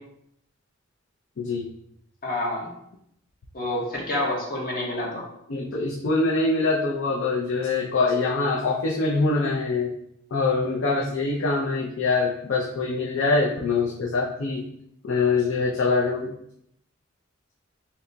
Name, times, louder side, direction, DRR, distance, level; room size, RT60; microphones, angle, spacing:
voice 1, 1.4-1.7 5.5-9.9 10.3-14.6 15.0-16.3, left 3 dB, 70° left, -3 dB, 0.5 m, -24 dB
voice 2, 2.2-2.7 3.5-5.2, left 1 dB, 45° left, -4 dB, 1.0 m, -28 dB
2.9 x 2.2 x 3.8 m, 0.75 s
head